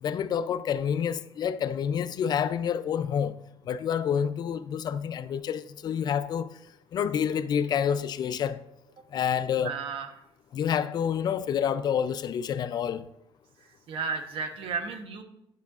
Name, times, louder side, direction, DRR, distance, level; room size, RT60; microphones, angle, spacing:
voice 1, 0.0-3.3 3.7-6.5 6.9-8.6 9.1-9.8 10.5-13.0, left 8 dB, 45° left, 0.4 m, -28 dB
voice 2, 9.6-10.1 13.9-15.2, right 5 dB, 70° right, 0.9 m, -33 dB
10.5 x 5.7 x 2.4 m
cardioid pair, 125°, 9 cm